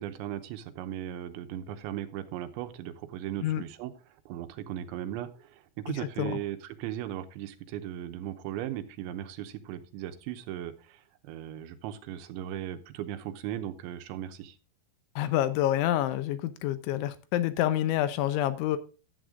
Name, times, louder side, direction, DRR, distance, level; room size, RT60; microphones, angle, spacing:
voice 1, 0.0-14.6, right 12 dB, 80° right, 8 dB, 3.2 m, -37 dB
voice 2, 15.2-18.8, left 12 dB, 85° left, 11 dB, 3.2 m, -27 dB
11.5 x 7.9 x 3.6 m, 0.33 s
omnidirectional pair, 5.3 m